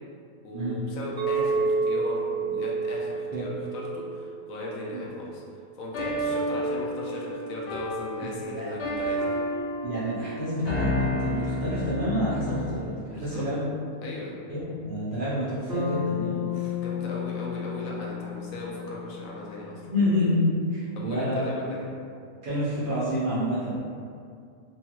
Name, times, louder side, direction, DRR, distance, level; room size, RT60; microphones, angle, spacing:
voice 1, 0.4-5.4 5.8-9.4 13.1-13.4 14.0-14.3 16.5-19.8 21.0-21.8, left 2 dB, 80° left, -3 dB, 1.0 m, -37 dB
Chink clink, 1.2-5.4, right 4 dB, 75° right, 1.1 m, -29 dB
sound 1, 5.9-12.9, equal, 55° left, 0.7 m, -31 dB
voice 2, 9.8-13.6 14.5-16.5 19.9-21.5 22.4-23.7, left 1 dB, 50° right, -10 dB, 0.6 m, -28 dB
Bass guitar, 15.7-19.8, left 7 dB, 35° right, 1.0 m, -33 dB
3.0 x 2.3 x 2.9 m, 2.3 s
omnidirectional pair, 1.5 m